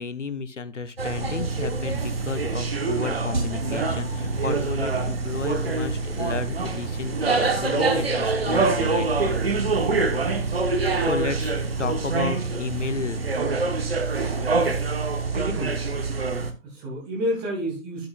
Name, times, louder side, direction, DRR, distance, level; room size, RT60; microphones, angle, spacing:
voice 1, 0.0-9.3 10.9-13.2, left 5 dB, 65° left, 13 dB, 0.8 m, -33 dB
sound 1, 1.0-16.5, right 3 dB, 45° right, 1.2 m, -25 dB
sound 2, 3.3-7.7, equal, 80° right, 2.5 m, -37 dB
voice 2, 15.3-15.8 16.6-18.1, equal, 10° right, -3 dB, 1.3 m, -29 dB
11.5 x 5.9 x 2.4 m, 0.32 s
figure-of-eight pair, 150°, 40 cm